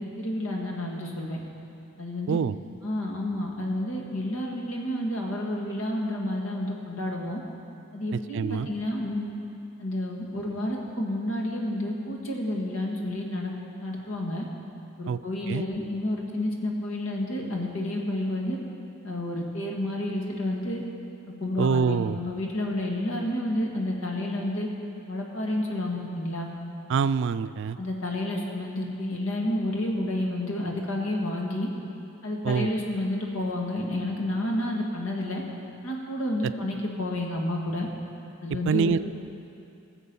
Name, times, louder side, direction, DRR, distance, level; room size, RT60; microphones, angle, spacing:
voice 1, 0.0-1.4 2.0-2.4 2.8-7.4 7.9-9.3 9.8-13.5 13.8-14.5 15.0-18.6 19.0-20.8 21.4-24.7 25.1-26.5 27.8-31.7 32.2-35.4 35.8-37.9 38.4-39.0, left 1 dB, 85° left, 0 dB, 1.9 m, -30 dB
voice 2, 8.1-8.7 15.1-15.2 15.5-15.6 21.6-22.2 26.9-27.8 32.4-32.7 38.5-39.0, right 6 dB, 60° right, 14 dB, 0.3 m, -25 dB
18.0 x 7.2 x 5.4 m, 2.8 s
head